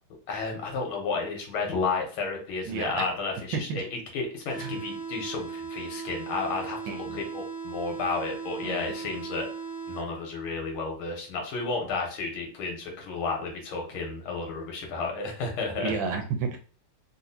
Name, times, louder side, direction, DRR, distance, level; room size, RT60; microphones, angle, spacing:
voice 1, 0.3-3.8 4.1-9.5 9.9-15.9, left 4 dB, 85° left, 1 dB, 1.8 m, -32 dB
voice 2, 2.7-3.0 3.5-3.8 4.6-4.8 6.9-7.2 8.6-8.9 15.8-16.6, right 5 dB, 75° right, 5 dB, 1.2 m, -31 dB
sound 1, 4.5-10.5, right 5 dB, 65° left, 1.6 m, -38 dB
4.0 x 2.4 x 2.7 m, 0.40 s
omnidirectional pair, 2.3 m